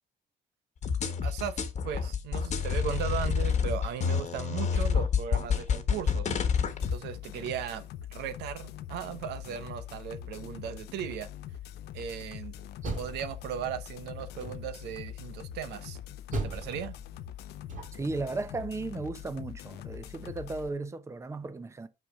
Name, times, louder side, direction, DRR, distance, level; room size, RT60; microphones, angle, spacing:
sound 1, 0.8-7.0, left 6 dB, 45° left, 1.3 m, -28 dB
voice 1, 1.2-6.3 6.9-7.8 8.1-11.3 11.9-12.5 12.9-16.0 16.4-17.0, right 9 dB, 80° right, 1.0 m, -37 dB
sound 2, 6.6-20.7, left 11 dB, 75° left, 0.7 m, -43 dB
Door, 12.6-13.8 14.4-15.0 16.3-18.2, right 2 dB, 50° right, 2.9 m, -38 dB
voice 2, 17.9-21.9, right 3 dB, 15° right, 0.8 m, -35 dB
5.8 x 5.6 x 4.9 m
cardioid pair, 110°, 17 cm